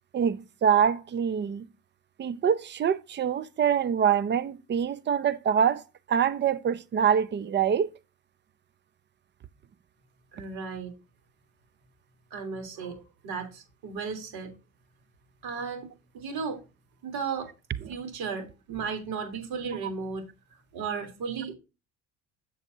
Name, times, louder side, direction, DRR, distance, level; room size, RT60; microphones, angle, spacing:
voice 1, 0.1-1.7 2.2-5.8 6.1-7.9, right 8 dB, 25° right, 0.6 m, -25 dB
voice 2, 10.3-10.9 12.3-14.5 15.4-15.9 16.1-16.6 17.0-17.5 17.9-20.2 20.7-21.5, right 5 dB, 60° right, 3.5 m, -35 dB
8.6 x 7.1 x 2.8 m
hypercardioid pair, 75°, 41 cm